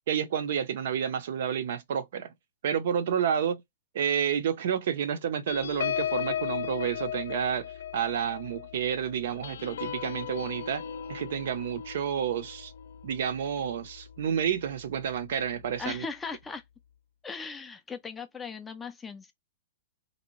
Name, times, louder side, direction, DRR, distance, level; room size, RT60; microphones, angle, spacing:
voice 1, 0.1-2.3 2.6-3.6 3.9-7.7 7.9-10.8 11.1-12.7 13.0-16.1, right 8 dB, 50° right, 0.5 m, -30 dB
sound 1, 5.5-14.4 14.8-15.0 15.3-15.6, left 9 dB, 85° left, 0.5 m, -37 dB
voice 2, 15.8-16.6 17.2-19.3, left 5 dB, 5° left, 0.3 m, -38 dB
3.3 x 2.6 x 2.9 m
hypercardioid pair, 180°, 0 cm